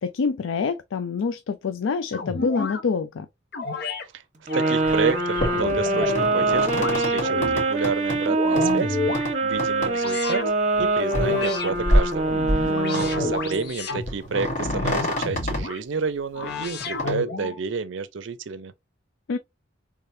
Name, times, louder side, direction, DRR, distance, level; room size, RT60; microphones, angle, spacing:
voice 1, 0.0-3.3 12.7-13.0 19.3-19.4, left 5 dB, 85° left, 0.4 m, -26 dB
sound 1, 2.1-2.8 3.5-4.0 4.5-6.3 6.7-7.6 8.1-9.3 9.9-10.5 11.1-11.7 12.2-14.1 14.6-15.8 16.3-17.6, left 3 dB, 55° left, 0.8 m, -31 dB
sound 2, 4.5-13.7, right 2 dB, 40° right, 1.1 m, -24 dB
voice 2, 4.5-10.5 10.8-18.7, right 5 dB, 70° right, 0.5 m, -30 dB
sound 3, 4.8-5.0 5.4-8.2 8.6-8.8 9.1-9.3 9.6-9.9 10.2-10.3 10.7-10.8 11.1-11.4 11.7-12.7 13.0-13.4 13.7-13.8 14.0-15.6 16.8-17.1, equal, 40° left, 1.8 m, -26 dB
3.6 x 3.3 x 2.7 m
head